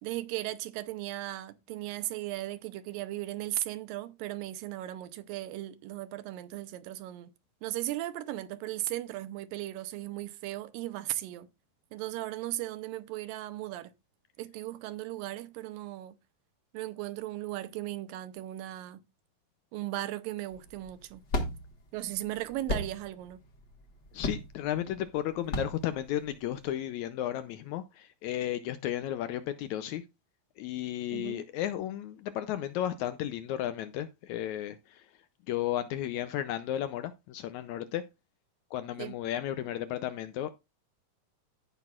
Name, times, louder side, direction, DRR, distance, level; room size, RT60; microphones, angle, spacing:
voice 1, 0.0-7.3 7.6-11.5 11.9-13.9 14.4-16.2 16.7-19.0 19.7-21.2 21.9-23.4 31.1-31.4 39.0-39.2, right 15 dB, 90° right, 2.5 m, -37 dB
sound 1, 20.5-26.7, left 1 dB, 45° left, 1.5 m, -36 dB
voice 2, 24.1-30.0 30.6-35.1 35.5-38.0 38.7-40.5, left 12 dB, 80° left, 1.7 m, -34 dB
16.0 x 6.0 x 2.4 m
omnidirectional pair, 3.9 m